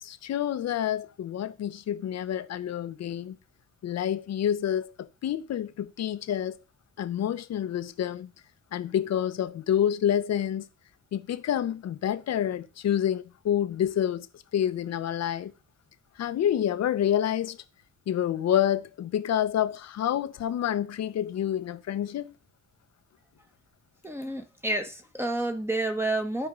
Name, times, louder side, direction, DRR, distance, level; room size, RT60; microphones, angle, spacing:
voice 1, 0.0-3.4 3.8-6.6 7.0-8.3 8.7-10.7 11.1-15.5 16.2-17.6 18.1-22.3, left 10 dB, 60° left, 0.9 m, -28 dB
voice 2, 24.0-26.5, right 2 dB, 10° right, 1.3 m, -29 dB
13.0 x 4.6 x 3.8 m
cardioid pair, 90°, 30 cm